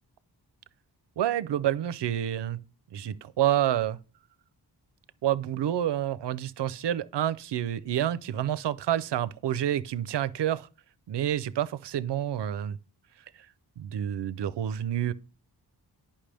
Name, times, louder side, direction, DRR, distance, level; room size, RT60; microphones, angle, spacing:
voice 1, 1.2-2.6 2.9-4.0 5.2-10.7 11.1-12.8 13.8-15.1, right 11 dB, 80° right, 0.5 m, -28 dB
10.0 x 5.6 x 3.3 m
wide cardioid pair, 130°, 41 cm